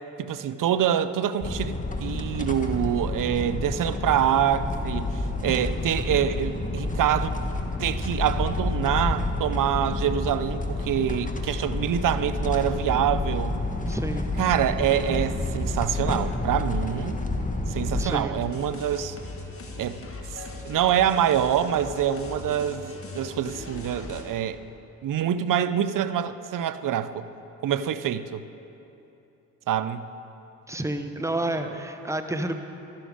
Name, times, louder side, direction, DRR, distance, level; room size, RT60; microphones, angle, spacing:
voice 1, 0.2-7.3 7.8-13.6 14.4-17.2 17.7-19.2 19.8-20.0 20.3-24.6 25.0-27.3 27.6-28.4 29.7-30.1 31.6-31.8, right 9 dB, 55° right, 13 dB, 0.7 m, -26 dB
sound 1, 1.4-18.2, left 2 dB, 20° left, 1.5 m, -29 dB
voice 2, 13.9-14.3 18.0-18.3 30.7-32.6, right 1 dB, 10° right, 7 dB, 1.0 m, -30 dB
sound 2, 18.3-24.2, left 3 dB, 35° left, 1.9 m, -39 dB
12.5 x 11.5 x 5.1 m, 2.9 s
supercardioid pair, 45°, 38 cm